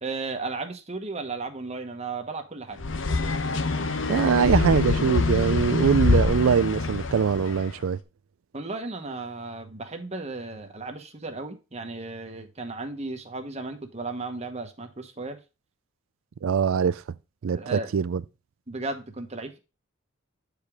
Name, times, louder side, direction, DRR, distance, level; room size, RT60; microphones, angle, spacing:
voice 1, 0.0-2.8 8.5-15.4 17.5-17.9 18.7-19.6, right 3 dB, 30° right, 1.1 m, -35 dB
sound 1, 2.8-7.7, left 3 dB, 65° left, 0.8 m, -25 dB
voice 2, 4.1-8.0 16.4-17.0 17.4-17.6 17.9-18.2, right 6 dB, 80° right, 0.4 m, -22 dB
8.3 x 5.0 x 3.5 m
head